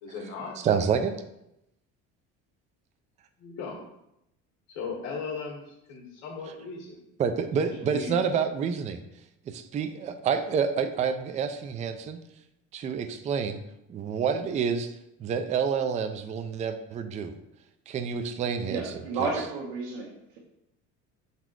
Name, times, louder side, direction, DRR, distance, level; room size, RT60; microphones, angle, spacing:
voice 1, 0.0-0.6 3.4-3.8 4.7-7.0 7.6-8.2 8.4-8.5, left 5 dB, 85° left, -1 dB, 1.8 m, -37 dB
voice 2, 0.6-1.1 7.2-9.0 9.5-12.2 12.7-13.6 13.9-14.9 15.2-17.3 17.9-18.9 19.2-19.3, right 6 dB, 25° right, 7 dB, 0.4 m, -28 dB
voice 3, 18.7-20.4, right 4 dB, 75° right, -4 dB, 1.4 m, -32 dB
6.4 x 4.1 x 4.5 m, 0.84 s
cardioid pair, 155°, 31 cm